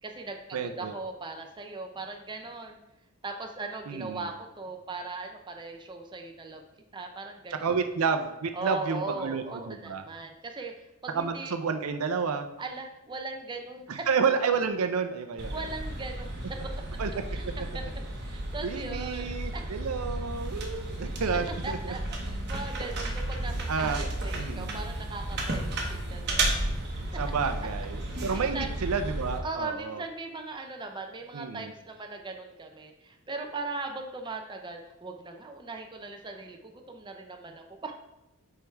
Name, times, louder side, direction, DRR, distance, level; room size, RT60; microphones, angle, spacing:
voice 1, 0.0-2.8 3.2-6.6 6.9-7.8 8.5-11.6 12.6-14.1 15.5-16.7 17.3-17.5 17.7-17.8 18.2-19.6 21.6-26.7 28.3-28.7 29.4-38.0, right 3 dB, 20° right, 3 dB, 0.5 m, -39 dB
voice 2, 0.5-0.9 3.9-4.3 7.5-10.0 11.1-12.5 13.9-15.5 17.0-17.1 17.4-17.5 18.6-21.9 23.7-24.1 24.4-24.9 27.2-30.0 31.3-31.7, right 5 dB, 75° right, 8 dB, 0.5 m, -30 dB
sound 1, 15.4-29.4, right 1 dB, 50° right, 1.0 m, -33 dB
5.2 x 4.6 x 4.5 m, 0.92 s
head